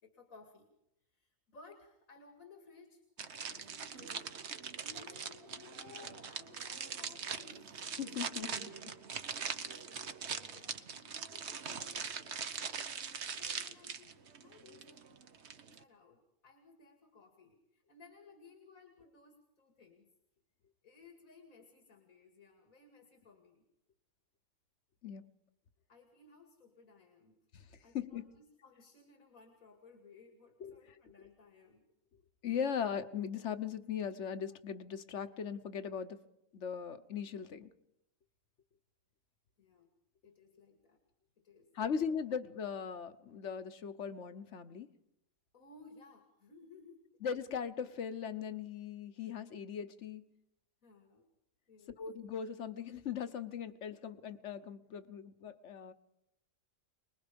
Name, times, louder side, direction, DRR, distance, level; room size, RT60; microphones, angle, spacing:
voice 1, 0.0-0.7 1.0-4.3 4.8-7.9 8.2-12.8 13.3-20.1 20.8-23.6 25.9-27.4 27.8-31.8 39.6-39.9 40.2-41.0 41.4-41.7 45.5-47.1 50.8-51.3 51.7-52.0, left 4 dB, 90° left, 4 dB, 2.8 m, -59 dB
sound 1, 3.2-15.8, right 6 dB, 55° right, 1.3 m, -42 dB
voice 2, 8.0-8.7 25.0-25.3 27.5-27.6 27.9-28.3 30.6-30.7 32.4-36.2 36.5-37.7 41.8-44.9 47.2-50.2 52.0-55.9, left 7 dB, 60° left, 12 dB, 1.3 m, -39 dB
24.5 x 21.0 x 5.3 m, 0.83 s
omnidirectional pair, 1.4 m